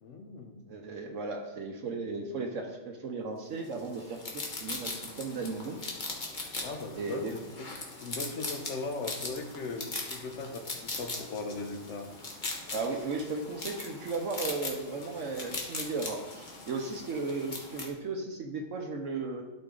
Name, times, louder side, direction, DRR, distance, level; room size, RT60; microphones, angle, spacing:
voice 1, 0.0-0.7 6.6-7.7 8.0-10.6 11.0-12.1, left 3 dB, 60° left, 6 dB, 1.1 m, -38 dB
voice 2, 0.7-5.8 6.9-7.3 12.7-19.4, right 3 dB, 65° right, 2 dB, 1.1 m, -35 dB
sound 1, 3.7-17.9, left 3 dB, 35° left, 1.2 m, -40 dB
11.5 x 4.3 x 3.8 m, 1.1 s
omnidirectional pair, 1.5 m